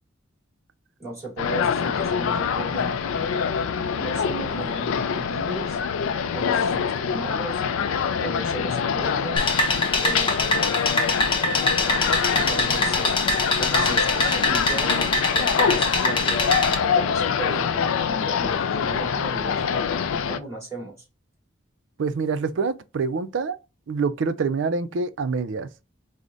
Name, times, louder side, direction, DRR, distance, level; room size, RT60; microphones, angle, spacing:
voice 1, 1.0-3.3 3.9-5.8 6.3-7.6 8.2-9.5 10.0-10.8 12.4-13.2 13.6-16.4 16.8-21.0, right 2 dB, 15° right, 2.4 m, -36 dB
sound 1, 1.4-20.4, left 7 dB, 90° left, 0.4 m, -25 dB
sound 2, 9.4-16.7, left 2 dB, 25° left, 0.7 m, -23 dB
voice 2, 22.0-23.6 23.9-25.7, right 4 dB, 65° right, 0.4 m, -26 dB
4.8 x 2.1 x 3.9 m
head